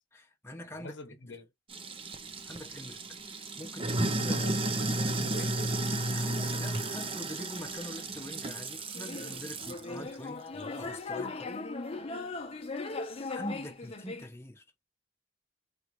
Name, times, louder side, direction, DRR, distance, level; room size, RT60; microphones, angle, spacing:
voice 1, 0.1-0.9 1.3-1.4 2.4-4.5 6.0-10.5 10.8-11.6 13.3-14.6, equal, 15° left, 1.0 m, -44 dB
voice 2, 0.7-1.5 3.8-6.1, left 2 dB, 70° left, 1.0 m, -45 dB
Sink (filling or washing), 1.7-9.8, right 2 dB, 30° right, 0.6 m, -33 dB
sound 1, 8.9-14.3, left 3 dB, 30° left, 0.8 m, -38 dB
4.3 x 2.4 x 3.0 m
head